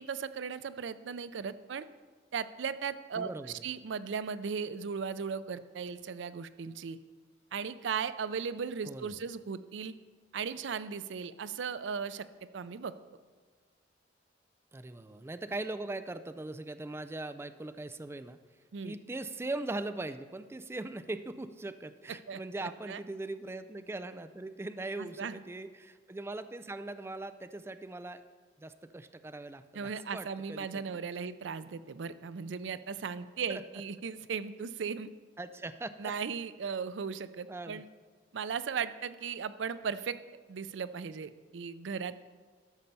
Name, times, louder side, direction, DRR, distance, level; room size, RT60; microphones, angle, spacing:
voice 1, 0.0-1.8 2.3-7.0 7.5-9.9 10.3-12.9 18.7-19.0 22.3-23.0 25.0-25.4 29.7-35.1 36.0-37.9 38.3-40.2 40.5-42.2, right 6 dB, 85° right, 14 dB, 0.4 m, -37 dB
voice 2, 3.1-3.6 8.9-9.1 14.7-18.4 18.8-28.2 28.6-31.0 33.5-33.6 35.4-36.1 37.5-37.8, right 2 dB, 15° right, 11 dB, 0.3 m, -40 dB
13.0 x 5.3 x 6.8 m, 1.5 s
head